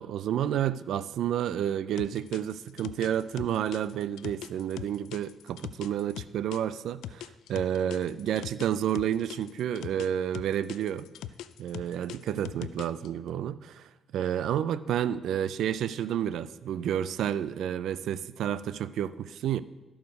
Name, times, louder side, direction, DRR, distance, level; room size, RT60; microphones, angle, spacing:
voice 1, 0.0-11.1 11.6-19.6, right 10 dB, 75° right, 16 dB, 0.4 m, -30 dB
sound 1, 2.0-6.6 7.0-10.1 10.3-13.1, left 11 dB, 85° left, 0.3 m, -40 dB
13.0 x 4.7 x 5.3 m, 1.1 s
cardioid pair, 90°, 0 cm